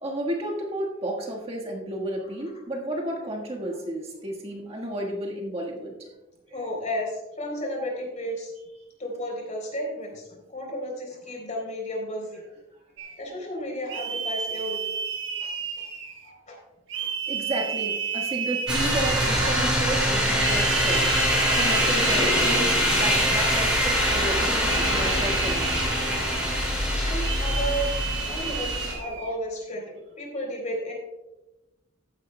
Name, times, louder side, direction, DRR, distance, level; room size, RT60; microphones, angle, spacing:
voice 1, 0.0-6.1 17.3-25.8, right 1 dB, 30° right, -1 dB, 1.5 m, -32 dB
voice 2, 6.5-8.5 9.0-12.4 13.2-14.8 15.4-15.5 16.2-16.6 16.9-17.1 27.0-27.9 28.2-30.9, equal, 40° left, 0 dB, 3.5 m, -33 dB
sound 1, 13.0-13.2 13.9-16.3 16.9-19.6 20.4-23.2 24.6-26.5 27.2-29.3, right 6 dB, 70° right, 1.3 m, -32 dB
sound 2, 18.7-28.9, equal, 5° right, 3.9 m, -23 dB
14.5 x 10.0 x 2.2 m, 0.99 s
head